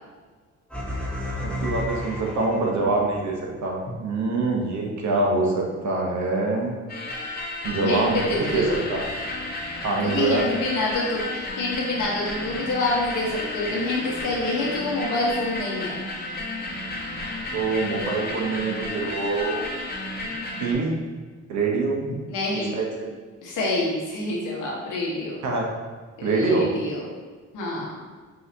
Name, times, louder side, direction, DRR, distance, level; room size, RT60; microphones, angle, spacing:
sound 1, 0.7-3.1, left 1 dB, 5° left, 1.0 m, -31 dB
voice 1, 1.4-3.4 3.6-6.7 7.6-8.6 8.9-9.1 9.8-10.5 17.5-19.7 20.6-20.9 21.5-22.0 22.5-22.8 25.4-25.6 26.2-26.7, right 3 dB, 65° right, -1 dB, 1.0 m, -24 dB
sound 2, 6.9-20.7, left 2 dB, 30° left, 0.9 m, -32 dB
voice 2, 7.7-8.8 10.0-16.1 22.3-22.7 23.4-25.3 26.2-27.0 27.5-28.0, left 2 dB, 90° left, -4 dB, 1.3 m, -27 dB
5.5 x 2.8 x 2.8 m, 1.4 s
cardioid pair, 90°, 30 cm